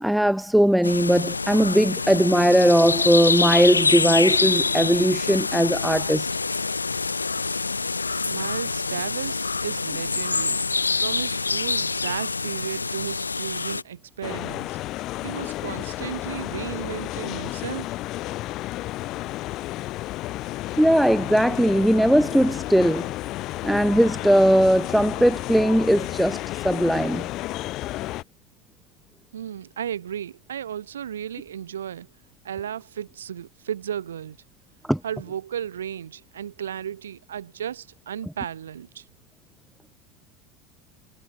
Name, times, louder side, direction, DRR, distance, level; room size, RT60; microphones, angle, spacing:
voice 1, 0.0-6.3 20.8-23.1 23.6-27.3 34.9-35.0, equal, ahead, 0.4 m, -19 dB
sound 1, 0.8-13.8, left 4 dB, 85° left, 0.8 m, -26 dB
voice 2, 8.3-10.6 11.0-14.8 15.2-18.0 29.3-32.1 32.4-34.4 35.0-39.1, right 9 dB, 75° right, 7.8 m, -34 dB
sound 2, 14.2-28.2, left 17 dB, 45° left, 1.8 m, -32 dB
figure-of-eight pair, 75°, 0 cm